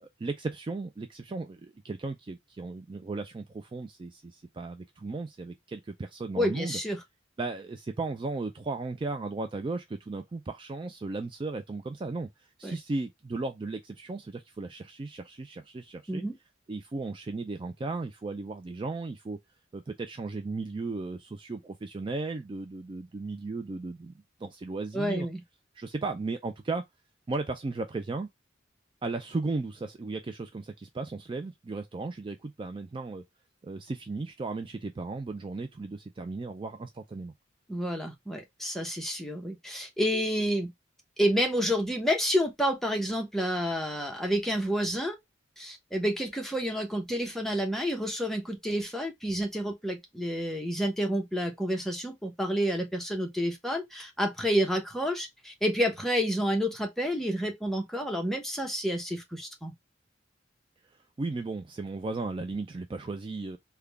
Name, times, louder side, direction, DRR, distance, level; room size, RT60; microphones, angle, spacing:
voice 1, 0.0-6.8 7.4-12.3 12.6-16.2 16.7-19.4 19.7-24.1 24.4-25.3 25.8-26.8 27.3-28.3 29.0-33.2 33.6-37.3 61.2-63.6, right 3 dB, 25° right, 0.3 m, -35 dB
voice 2, 6.4-7.0 12.6-12.8 16.1-16.4 24.9-25.4 37.7-40.7 41.2-45.1 45.6-59.7, equal, ahead, 0.8 m, -29 dB
3.6 x 2.2 x 3.3 m
head